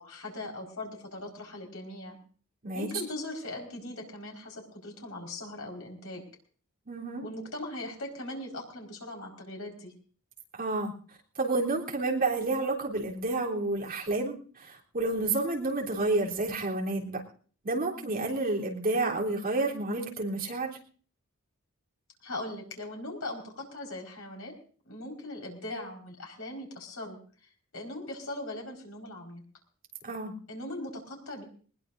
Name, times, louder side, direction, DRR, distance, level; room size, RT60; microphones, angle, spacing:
voice 1, 0.0-2.2 2.7-6.2 7.2-9.9 17.9-18.3 22.2-24.5 24.8-27.2 27.7-29.4 30.5-31.4, left 1 dB, 80° left, 1 dB, 4.8 m, -40 dB
voice 2, 6.9-7.3 10.5-10.9 11.4-17.2 17.6-20.8 30.0-30.3, right 2 dB, 45° right, -2 dB, 3.5 m, -30 dB
20.5 x 20.5 x 2.6 m, 0.43 s
head